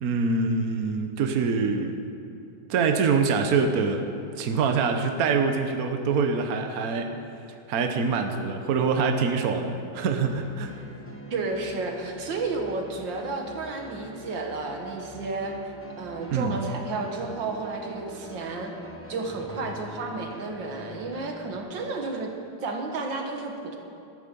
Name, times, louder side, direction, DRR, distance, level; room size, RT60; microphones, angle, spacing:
voice 1, 0.0-1.9 2.7-4.0 4.4-7.1 7.7-10.7 16.3-16.6, right 5 dB, 60° right, 5 dB, 1.3 m, -25 dB
sound 1, 10.2-21.6, left 1 dB, 10° left, 0.9 m, -44 dB
voice 2, 11.3-15.5 16.0-18.7 19.1-22.3 22.6-23.8, right 3 dB, 85° right, 2 dB, 2.2 m, -32 dB
14.5 x 13.0 x 5.3 m, 2.7 s
omnidirectional pair, 2.0 m